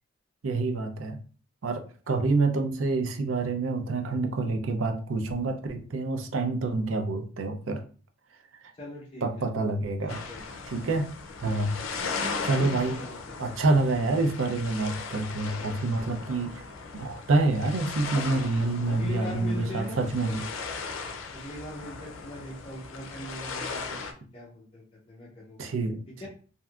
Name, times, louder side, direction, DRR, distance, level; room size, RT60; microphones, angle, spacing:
voice 1, 0.4-1.2 1.6-7.8 9.2-10.2 10.7-11.1 11.4-11.7 12.4-13.0 13.4-16.6 16.9-20.4 25.6-26.0, right 3 dB, 70° right, 5 dB, 0.5 m, -27 dB
voice 2, 8.8-9.2 10.0-10.4 12.6-13.6 18.9-20.3 21.3-25.7 26.2-26.3, left 1 dB, 30° left, -6 dB, 0.7 m, -41 dB
sound 1, 10.1-24.1, left 4 dB, 80° left, 0.5 m, -37 dB
3.3 x 2.6 x 2.4 m, 0.40 s
head